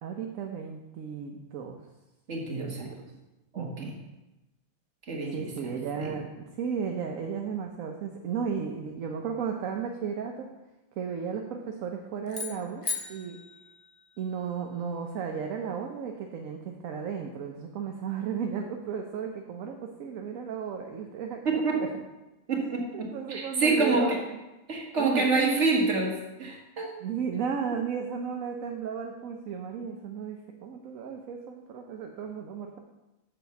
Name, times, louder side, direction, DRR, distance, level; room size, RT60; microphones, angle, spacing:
voice 1, 0.0-1.8 2.5-3.0 3.5-4.0 5.3-10.5 11.0-13.4 14.2-21.9 22.9-24.4 25.0-25.4 27.0-32.8, right 6 dB, 70° right, 2 dB, 1.1 m, -34 dB
voice 2, 2.3-2.8 3.5-3.7 5.1-5.5 21.5-21.8 22.5-24.1 24.7-26.9, right 3 dB, 50° right, -1 dB, 1.9 m, -27 dB
sound 1, 12.3-14.6, left 5 dB, 25° left, 0.8 m, -38 dB
7.2 x 4.7 x 6.9 m, 1.0 s
omnidirectional pair, 1.5 m